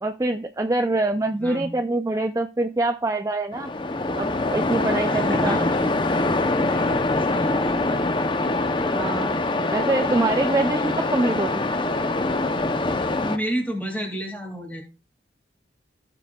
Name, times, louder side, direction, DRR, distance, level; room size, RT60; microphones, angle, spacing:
voice 1, 0.0-3.7 4.2-5.6 8.9-9.4 9.7-11.7, right 2 dB, 15° right, 6 dB, 0.4 m, -24 dB
Waves surf, 3.5-13.4, left 2 dB, 25° left, 0.6 m, -24 dB
voice 2, 5.1-5.9 6.7-6.9 7.3-8.0 10.8-11.1 13.2-14.8, equal, 10° left, 1 dB, 2.2 m, -31 dB
15.5 x 6.9 x 2.3 m, 0.33 s
head